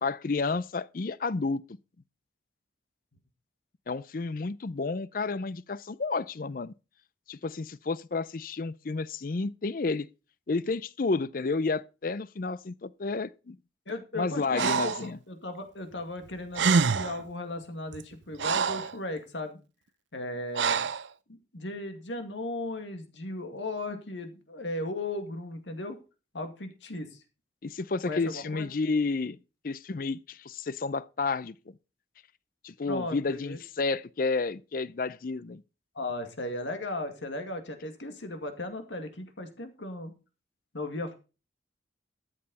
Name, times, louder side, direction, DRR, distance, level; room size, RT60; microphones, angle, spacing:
voice 1, 0.0-1.6 3.9-6.7 7.3-10.1 10.5-13.6 14.1-15.2 27.6-29.4 29.6-31.7 32.6-35.6, left 3 dB, 50° left, 0.5 m, -31 dB
voice 2, 13.9-19.6 20.1-20.9 21.3-26.0 26.3-27.2 28.1-28.7 32.9-33.6 36.0-40.1 40.7-41.2, left 2 dB, 85° left, 2.1 m, -36 dB
Breathing, 14.6-15.1 16.3-16.4 16.5-17.2 17.9-19.0 20.5-21.1, right 5 dB, 80° right, 0.6 m, -26 dB
13.0 x 7.7 x 4.1 m
head